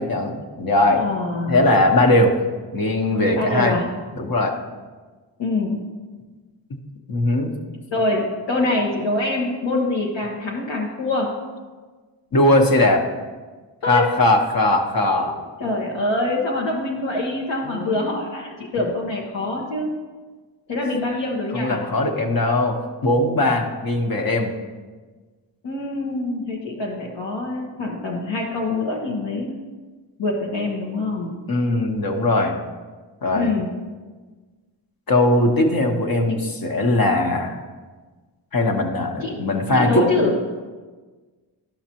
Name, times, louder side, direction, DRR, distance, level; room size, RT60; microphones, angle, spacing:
voice 1, 0.0-1.0 1.5-2.3 2.7-3.8 4.1-4.6 7.1-7.5 12.3-13.1 13.9-15.4 17.6-18.1 21.5-22.8 23.0-24.5 31.5-32.6 33.2-33.5 35.1-37.6 38.5-40.1, left 1 dB, 50° left, 3 dB, 1.2 m, -19 dB
voice 2, 1.0-1.7 3.3-3.8 5.4-5.8 7.9-11.3 13.8-14.0 15.6-19.9 20.7-21.8 25.6-29.6 30.2-31.3 33.3-33.7 36.3-36.4 39.2-39.4 39.7-40.4, left 2 dB, 75° left, -3 dB, 1.2 m, -24 dB
12.0 x 5.8 x 2.9 m, 1.4 s
cardioid pair, 60°, 44 cm